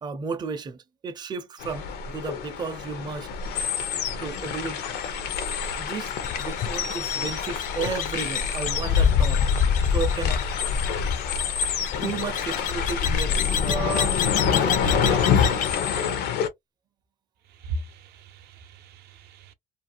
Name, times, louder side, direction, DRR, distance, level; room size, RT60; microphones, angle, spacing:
voice 1, 0.0-3.3 4.2-4.8 5.8-9.5 9.9-10.4 12.0-14.2 14.5-15.6, right 5 dB, 25° right, 0.5 m, -33 dB
sound 1, 1.6-16.5, left 7 dB, 85° left, 0.7 m, -27 dB
sound 2, 6.2-15.7, left 7 dB, 50° left, 0.4 m, -27 dB
voice 2, 17.4-19.5, right 2 dB, 70° right, 0.6 m, -38 dB
2.5 x 2.2 x 2.8 m
cardioid pair, 110°, 17 cm